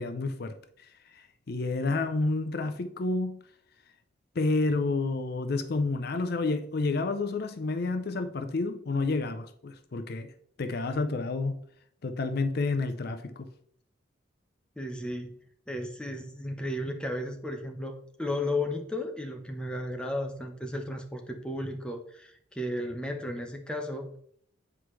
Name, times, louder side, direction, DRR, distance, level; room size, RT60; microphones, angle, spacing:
voice 1, 0.0-3.4 4.4-10.3 10.6-11.6 12.0-13.5, left 3 dB, 50° left, 0.5 m, -30 dB
voice 2, 14.8-15.3 15.7-24.1, left 1 dB, 5° left, 0.7 m, -34 dB
7.8 x 4.8 x 3.1 m
head